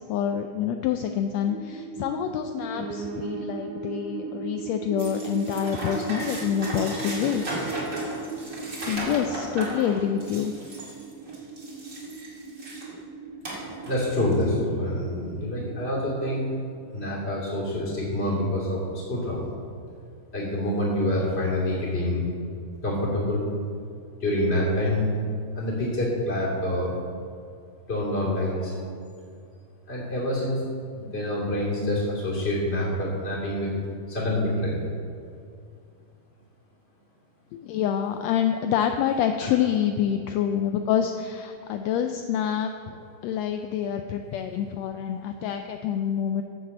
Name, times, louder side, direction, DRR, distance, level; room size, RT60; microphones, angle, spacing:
voice 1, 0.0-7.5 8.7-10.5 37.5-46.4, left 9 dB, 80° left, 6 dB, 1.6 m, -27 dB
sound 1, 1.5-16.5, right 3 dB, 80° right, 1.3 m, -38 dB
Piano, 2.7-11.8 12.2-13.4 13.7-13.8 14.0-14.1 14.3-14.4 15.0-15.1, right 5 dB, 60° right, 2.1 m, -43 dB
sound 2, 5.0-12.9 13.4-14.4, right 1 dB, 25° right, 2.5 m, -36 dB
voice 2, 13.8-16.5 16.9-18.8 19.1-19.5 20.3-22.3 22.8-23.4 24.2-25.1 25.5-26.9 27.9-28.7 29.9-30.6 30.9-33.7 34.1-34.8 39.4-39.5, left 1 dB, 20° left, -5 dB, 3.0 m, -26 dB
9.4 x 7.3 x 7.3 m, 2.3 s
omnidirectional pair, 3.4 m